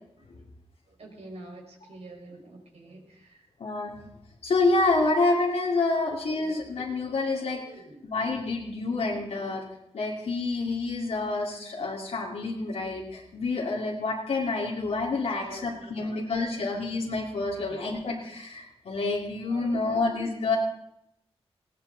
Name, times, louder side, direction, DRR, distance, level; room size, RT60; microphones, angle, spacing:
voice 1, 0.2-0.5 0.9-3.5 6.3-6.7 7.2-8.1 8.9-9.2 15.4-16.7 17.6-17.9 19.5-20.1, right 2 dB, 75° right, 0 dB, 5.1 m, -48 dB
voice 2, 3.6-3.9 4.4-7.6 8.0-9.6 9.9-20.6, left 3 dB, 90° left, -4 dB, 2.5 m, -28 dB
20.5 x 17.5 x 4.0 m, 0.80 s
wide cardioid pair, 100°, 11 cm